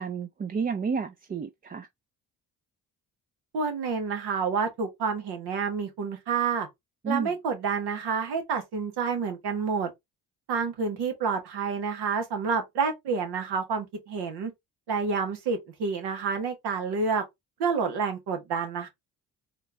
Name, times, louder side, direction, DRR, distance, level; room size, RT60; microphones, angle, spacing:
voice 1, 0.0-1.9 7.0-7.3, right 5 dB, 25° right, 0.4 m, -31 dB
voice 2, 3.5-6.7 7.1-9.9 10.5-14.5 14.9-17.2 17.6-18.9, right 5 dB, 85° right, 1.4 m, -29 dB
4.3 x 2.6 x 3.4 m
supercardioid pair, 65°, 39 cm